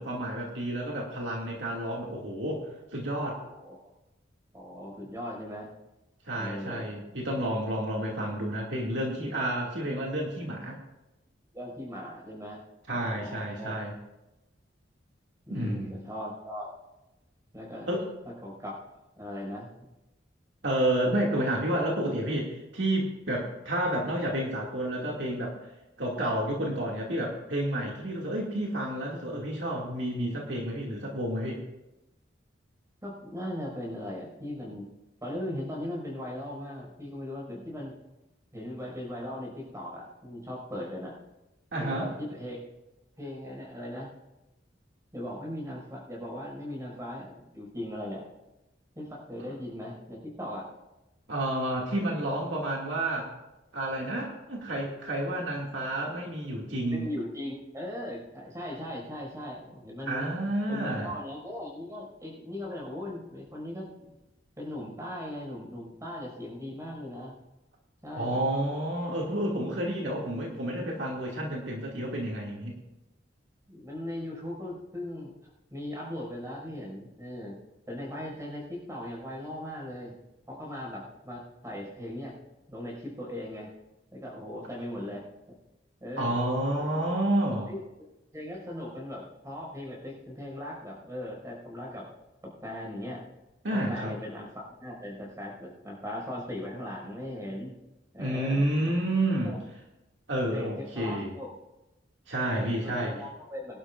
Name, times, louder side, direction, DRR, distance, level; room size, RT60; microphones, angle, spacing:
voice 1, 0.0-2.6 2.9-3.4 6.3-10.8 12.9-13.9 15.5-15.9 17.9-18.0 20.6-25.5 26.0-31.6 41.7-42.1 51.3-53.3 53.7-57.1 60.1-61.1 68.2-72.8 86.2-87.7 93.6-94.1 98.2-99.6 100.3-101.3 102.3-103.2, right 1 dB, 70° right, -2 dB, 2.5 m, -30 dB
voice 2, 3.4-3.8 4.5-5.7 6.3-6.9 11.5-12.6 12.9-13.7 15.5-16.7 17.5-17.9 18.2-18.8 19.2-19.7 33.0-34.8 35.2-38.0 38.5-41.2 41.8-42.7 43.2-44.1 45.1-48.2 48.9-50.7 56.9-60.3 60.7-64.2 64.6-67.3 68.0-68.4 69.8-70.2 73.7-75.3 75.7-77.6 77.9-80.1 80.5-82.3 82.7-83.7 84.1-85.2 86.0-86.4 86.9-87.1 87.7-87.8 88.3-92.1 92.4-93.2 93.7-97.8 98.1-98.9 99.4-99.6 100.5-101.5 102.5-103.8, left 1 dB, 15° right, -2 dB, 5.9 m, -39 dB
24.0 x 11.5 x 2.6 m, 0.99 s
head